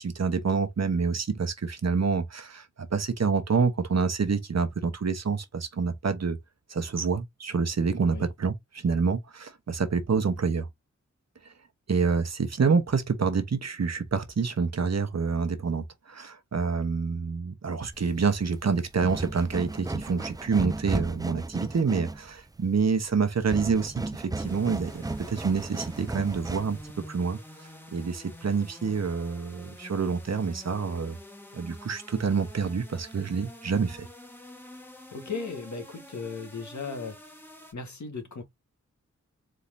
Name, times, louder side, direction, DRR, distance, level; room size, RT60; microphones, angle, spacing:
voice 1, 0.0-6.4 6.7-10.7 11.9-26.8 27.1-31.2 31.5-34.1, right 5 dB, 65° right, 1.0 m, -27 dB
sound 1, 17.9-26.9, right 2 dB, 15° right, 0.3 m, -35 dB
sound 2, 24.4-37.7, equal, 5° left, 1.3 m, -47 dB
voice 2, 35.1-37.2 37.7-38.4, left 4 dB, 75° left, 1.7 m, -36 dB
4.3 x 3.8 x 2.6 m
wide cardioid pair, 85°, 29 cm